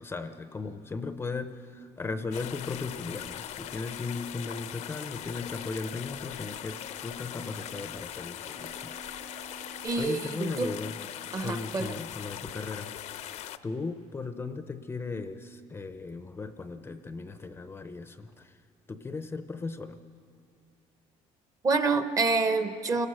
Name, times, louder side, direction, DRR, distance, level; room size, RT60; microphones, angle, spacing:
voice 1, 0.0-9.0 10.0-11.0 11.4-12.9 13.6-18.6 18.9-20.0, left 4 dB, 15° left, 9 dB, 0.6 m, -37 dB
sound 1, 2.3-13.6, left 11 dB, 60° left, 0.6 m, -40 dB
sound 2, 4.4-5.9 6.4-7.9 8.4-9.9, right 6 dB, 75° right, 5.8 m, -54 dB
voice 2, 9.8-10.7 11.3-11.9 21.6-23.1, right 3 dB, 25° right, 9 dB, 0.8 m, -27 dB
28.5 x 19.0 x 6.2 m, 2.7 s
cardioid pair, 160°, 13 cm